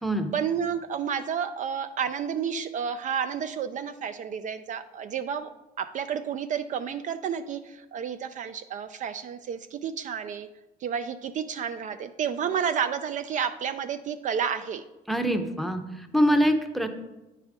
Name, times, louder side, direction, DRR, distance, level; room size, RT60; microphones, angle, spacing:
voice 1, 0.3-5.5 5.8-10.5 10.8-14.8, right 7 dB, 50° right, 10 dB, 0.4 m, -31 dB
voice 2, 15.1-16.9, equal, ahead, 7 dB, 0.7 m, -24 dB
9.5 x 4.9 x 3.7 m, 1.0 s
cardioid pair, 110°, 17 cm